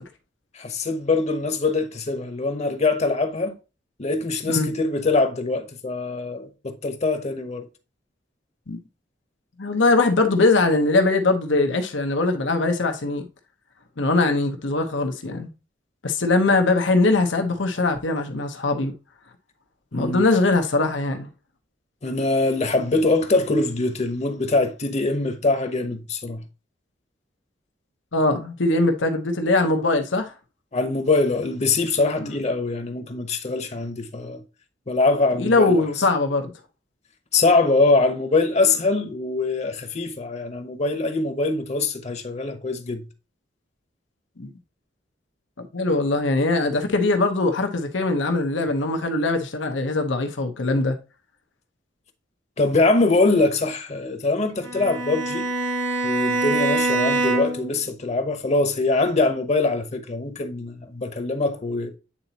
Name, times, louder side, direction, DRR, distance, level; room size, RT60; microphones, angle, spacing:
voice 1, 0.5-3.6 4.0-7.7 19.9-20.2 22.0-26.4 30.7-34.4 34.9-35.8 37.3-43.0 52.6-55.5 56.0-61.9, left 3 dB, 35° left, 0.9 m, -23 dB
voice 2, 9.6-13.2 14.0-15.5 16.0-18.9 19.9-21.3 28.1-30.3 32.2-32.3 35.4-36.5 44.4-44.5 45.7-50.9, left 2 dB, 90° left, 1.0 m, -21 dB
Bowed string instrument, 54.6-57.7, right 2 dB, 85° right, 1.3 m, -24 dB
8.6 x 4.0 x 2.8 m
head